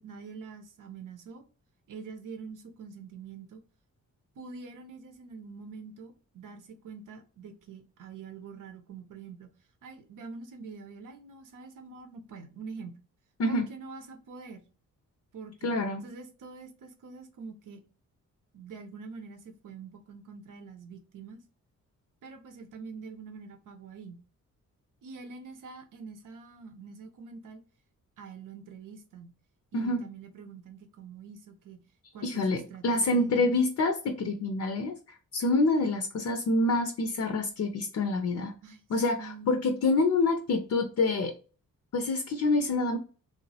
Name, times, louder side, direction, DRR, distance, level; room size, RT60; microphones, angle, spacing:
voice 1, 0.0-1.4 1.9-3.6 4.4-9.5 9.8-13.0 13.5-14.6 15.3-15.7 16.0-17.8 18.5-21.4 22.2-24.2 25.0-27.6 28.2-29.3 29.7-31.8 32.1-33.5 38.6-38.8 39.1-39.6, right 5 dB, 75° right, 0.7 m, -45 dB
voice 2, 15.6-16.0 29.7-30.0 32.2-38.5 38.9-41.3 41.9-43.0, left 2 dB, 55° left, 0.5 m, -27 dB
3.1 x 2.0 x 2.7 m
cardioid pair, 85°, 32 cm